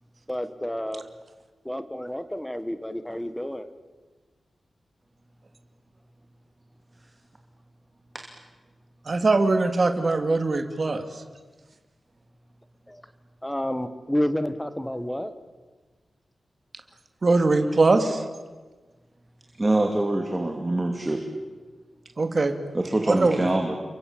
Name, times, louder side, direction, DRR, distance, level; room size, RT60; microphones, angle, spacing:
voice 1, 0.3-1.0 1.6-3.7 12.9-13.0 13.4-15.3, equal, 5° left, 11 dB, 1.6 m, -30 dB
voice 2, 9.1-11.0 17.2-18.2 22.2-22.6 23.1-23.4, right 3 dB, 40° right, 7 dB, 2.6 m, -21 dB
voice 3, 19.6-21.2 22.7-23.7, right 2 dB, 20° right, 3 dB, 2.7 m, -25 dB
29.0 x 23.0 x 8.7 m, 1.3 s
wide cardioid pair, 155°, 0 cm